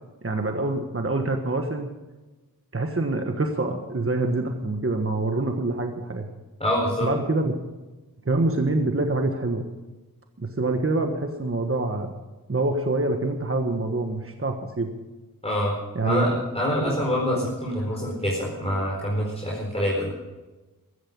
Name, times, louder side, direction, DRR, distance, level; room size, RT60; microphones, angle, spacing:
voice 1, 0.2-1.9 2.7-6.3 7.0-7.6 8.2-9.7 10.4-12.1 12.5-14.9 15.9-16.4 16.8-17.0, right 2 dB, 35° right, 5 dB, 1.5 m, -25 dB
voice 2, 6.6-7.1 15.4-15.8 16.0-20.1, equal, 15° left, -4 dB, 4.5 m, -25 dB
15.5 x 14.5 x 5.4 m, 1.2 s
wide cardioid pair, 70°, 36 cm